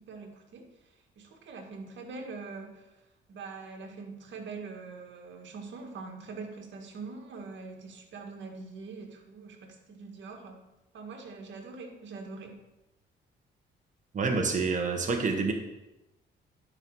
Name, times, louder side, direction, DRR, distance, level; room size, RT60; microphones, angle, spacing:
voice 1, 0.1-3.0 3.3-10.6 10.9-12.5, right 4 dB, 65° right, 2 dB, 1.9 m, -43 dB
voice 2, 14.1-15.5, right 4 dB, 40° right, 3 dB, 1.4 m, -27 dB
10.5 x 5.5 x 4.8 m, 0.98 s
cardioid pair, 90°, 20 cm